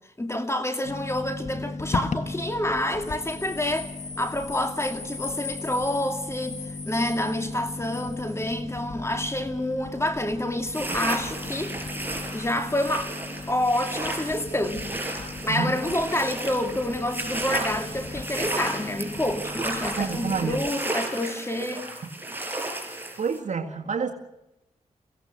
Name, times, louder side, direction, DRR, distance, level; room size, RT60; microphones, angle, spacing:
voice 1, 0.2-3.9 4.2-6.6 6.9-11.7 12.3-13.1 13.5-14.9 15.4-21.9, left 1 dB, 20° left, 2.3 m, -28 dB
sound 1, 0.8-20.7, left 3 dB, 60° left, 1.6 m, -37 dB
sound 2, 3.1-8.4, left 4 dB, 90° left, 4.0 m, -40 dB
sound 3, 10.7-23.4, right 2 dB, 15° right, 5.2 m, -33 dB
voice 2, 20.0-20.6 23.2-24.1, right 5 dB, 65° right, 1.9 m, -28 dB
23.5 x 17.0 x 6.6 m
cardioid pair, 60°, 13 cm